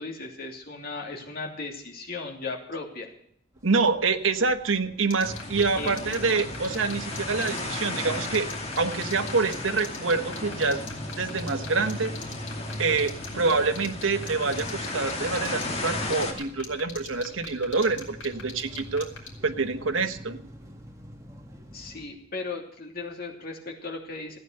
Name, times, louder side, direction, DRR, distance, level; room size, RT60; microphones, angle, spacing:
voice 1, 0.0-3.1 5.7-5.9 21.7-24.4, left 3 dB, 50° left, 0 dB, 2.8 m, -36 dB
sound 1, 3.5-22.1, equal, 15° right, 1.9 m, -50 dB
voice 2, 3.6-8.5 8.8-10.8 11.2-12.2 12.8-19.1 19.4-20.4, right 4 dB, 80° right, 7 dB, 1.2 m, -26 dB
sound 2, 5.1-19.3, left 6 dB, 65° left, 3.5 m, -39 dB
sound 3, 5.2-16.3, left 2 dB, 35° left, 2.3 m, -34 dB
15.5 x 9.4 x 6.8 m, 0.66 s
head